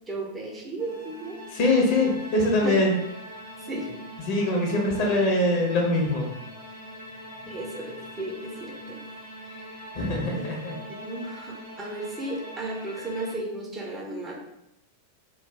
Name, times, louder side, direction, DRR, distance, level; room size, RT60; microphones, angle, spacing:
voice 1, 0.1-1.4 2.6-2.8 3.6-4.0 7.5-9.0 9.4-9.7 10.3-10.5 10.9-14.3, right 2 dB, 20° right, -1 dB, 0.6 m, -34 dB
sound 1, 0.8-13.3, equal, 90° right, 1.3 m, -42 dB
voice 2, 1.5-2.9 4.3-6.3 9.9-10.7, left 2 dB, 45° left, -1 dB, 0.9 m, -23 dB
3.1 x 2.2 x 3.4 m, 0.85 s
figure-of-eight pair, 90°, 0 cm